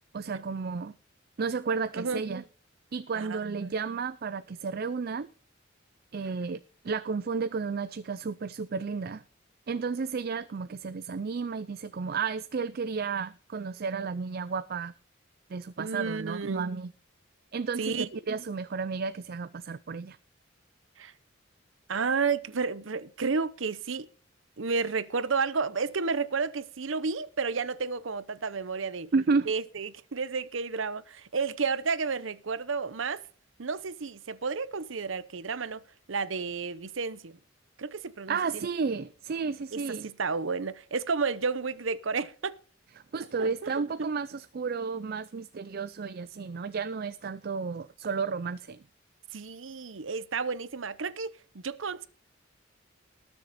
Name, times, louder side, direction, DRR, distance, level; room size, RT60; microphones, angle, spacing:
voice 1, 0.1-0.9 1.4-2.4 2.9-5.3 6.1-9.2 9.7-14.9 15.5-16.9 17.5-20.2 29.1-29.5 38.3-40.1 43.1-48.8, right 5 dB, 50° right, 0.4 m, -32 dB
voice 2, 3.1-3.7 15.8-16.7 17.8-18.1 21.0-21.1 21.9-24.1 24.6-29.1 29.5-33.2 33.6-35.8 36.1-37.3 37.8-38.7 39.7-42.6 43.4-43.7 44.0-44.1 49.3-52.1, right 4 dB, 70° right, 0.8 m, -31 dB
19.5 x 7.1 x 4.2 m
head